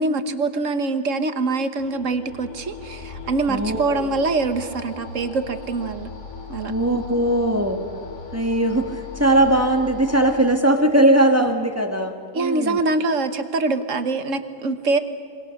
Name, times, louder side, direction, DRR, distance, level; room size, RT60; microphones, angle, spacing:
voice 1, 0.0-6.1 6.5-6.7 12.3-15.0, right 3 dB, 85° right, 9 dB, 1.7 m, -24 dB
sound 1, 1.8-10.6, left 5 dB, 70° left, 2.6 m, -38 dB
voice 2, 3.5-4.1 6.7-7.8 8.3-12.8, right 1 dB, 10° right, 4 dB, 1.6 m, -19 dB
27.0 x 24.0 x 6.6 m, 2.4 s
omnidirectional pair, 1.3 m